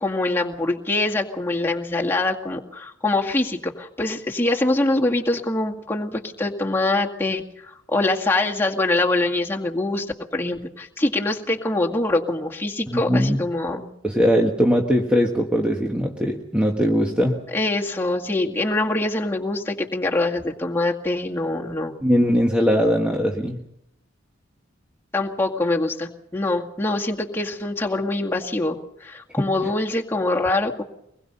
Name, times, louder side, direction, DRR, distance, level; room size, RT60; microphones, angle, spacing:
voice 1, 0.0-7.4 7.9-10.1 10.3-13.9 17.5-21.9 25.1-30.8, left 2 dB, 10° left, -1 dB, 2.1 m, -24 dB
voice 2, 12.9-13.4 14.0-17.4 22.0-23.6 29.4-29.5, equal, 5° right, 0 dB, 1.6 m, -20 dB
24.5 x 21.0 x 5.6 m, 0.78 s
head